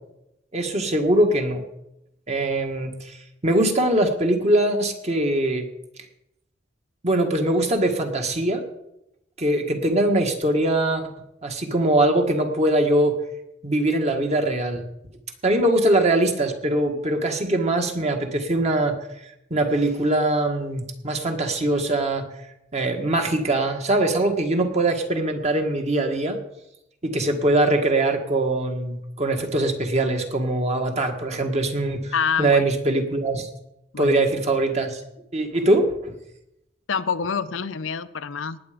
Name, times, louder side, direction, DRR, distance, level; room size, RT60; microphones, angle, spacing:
voice 1, 0.5-1.6 2.3-3.2 3.4-5.7 7.0-8.6 9.4-11.0 11.4-13.2 13.6-14.8 15.4-19.0 19.5-22.3 22.7-26.4 27.0-32.1 32.4-33.5 34.0-35.0 35.3-36.1, right 1 dB, 35° right, 4 dB, 1.6 m, -22 dB
voice 2, 32.1-32.7 33.9-34.2 36.9-38.6, left 6 dB, 85° left, 12 dB, 0.7 m, -26 dB
19.0 x 7.9 x 5.1 m, 0.85 s
head